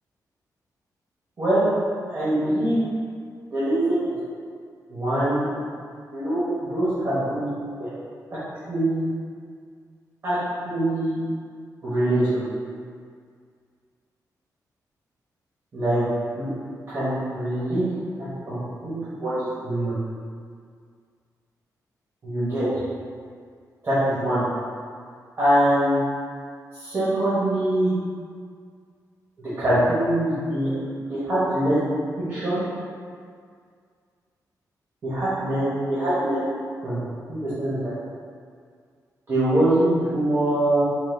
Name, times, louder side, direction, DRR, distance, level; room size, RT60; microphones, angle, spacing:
voice 1, 1.4-1.7 2.1-2.8 3.5-4.2 4.9-5.5 6.1-7.5 7.8-7.9 8.7-9.1 10.2-10.4 10.6-11.2 11.8-12.5 15.7-16.0 16.3-16.5 16.9-17.8 18.5-18.6 18.8-19.0 19.2-19.9 22.2-22.7 23.8-24.4 25.4-26.0 26.7-27.9 29.6-30.7 31.1-31.8 32.3-32.6 35.0-36.4 36.8-37.0 37.3-37.9 39.3-40.8, right 1 dB, 40° right, -12 dB, 1.1 m, -23 dB
3.9 x 3.8 x 2.3 m, 2.1 s
wide cardioid pair, 150°, 7 cm